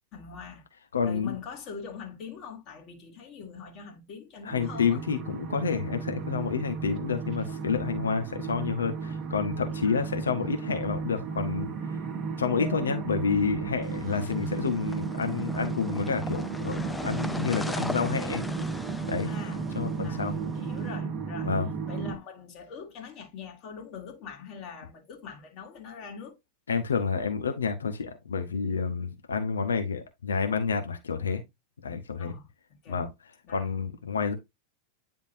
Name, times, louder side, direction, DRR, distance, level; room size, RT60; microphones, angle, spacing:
voice 1, 0.1-0.6 1.0-5.0 9.8-10.1 12.6-13.3 19.3-19.6 20.0-21.5 21.9-26.4 32.2-32.4 32.7-33.0 33.4-33.7, left 5 dB, 40° left, 1.9 m, -43 dB
voice 2, 0.9-1.4 4.4-11.7 12.4-18.4 19.1-19.3 19.7-20.3 21.4-21.7 26.7-31.4 31.8-32.3 32.9-33.1 33.5-34.3, left 5 dB, 70° left, 1.0 m, -29 dB
sound 1, 4.5-22.2, right 5 dB, 30° right, 1.1 m, -34 dB
sound 2, 13.8-20.8, left 1 dB, 5° left, 0.4 m, -38 dB
9.8 x 3.6 x 2.6 m
figure-of-eight pair, 90°, 0 cm